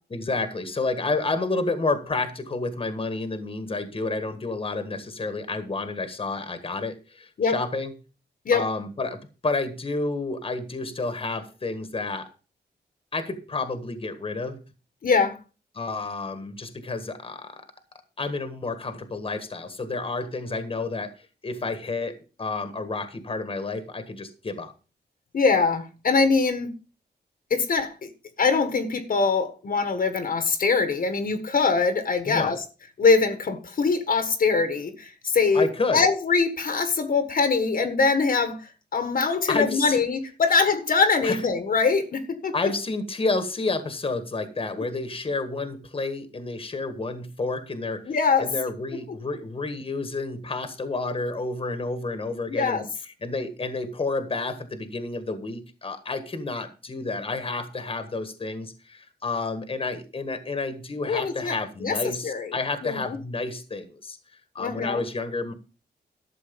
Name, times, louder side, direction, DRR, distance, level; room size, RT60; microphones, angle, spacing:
voice 1, 0.1-7.9 8.5-9.2 9.4-12.3 13.1-14.6 15.7-17.6 18.2-22.1 22.4-24.7 32.2-32.6 35.5-36.0 39.5-40.0 41.2-41.4 42.5-52.9 53.2-64.2 64.5-65.5, left 3 dB, 30° left, 1.6 m, -30 dB
voice 2, 15.0-15.4 25.3-26.7 27.5-28.1 28.4-32.6 33.0-38.6 38.9-42.7 48.0-48.5 52.5-52.8 61.1-62.5 62.8-63.2 64.6-65.0, left 4 dB, 55° left, 1.6 m, -23 dB
12.5 x 7.0 x 5.2 m
wide cardioid pair, 125°, 17 cm